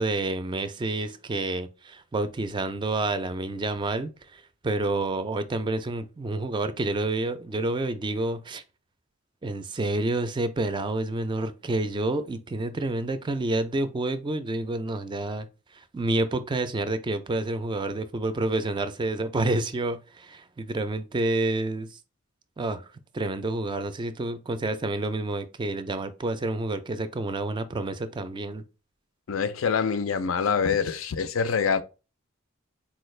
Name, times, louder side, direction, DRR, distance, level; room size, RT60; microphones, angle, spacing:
voice 1, 0.0-8.6 9.4-15.5 15.7-22.0 22.6-22.9 23.1-28.6, right 2 dB, 25° right, 0.3 m, -29 dB
voice 2, 29.3-31.8, left 6 dB, 85° left, 0.5 m, -25 dB
4.1 x 2.3 x 3.1 m
head